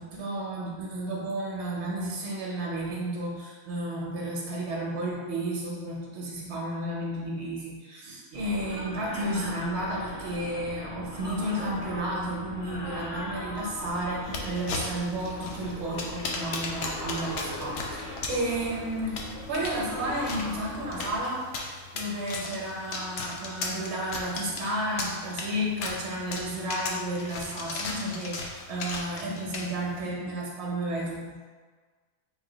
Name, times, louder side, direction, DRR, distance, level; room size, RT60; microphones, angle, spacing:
voice 1, 0.0-19.2 19.5-31.4, right 1 dB, 60° right, -3 dB, 1.0 m, -32 dB
sound 1, 8.3-21.2, left 1 dB, 25° left, 0.4 m, -39 dB
sound 2, 14.2-30.0, left 3 dB, 70° left, 0.8 m, -37 dB
3.5 x 2.3 x 3.9 m, 1.5 s
omnidirectional pair, 1.4 m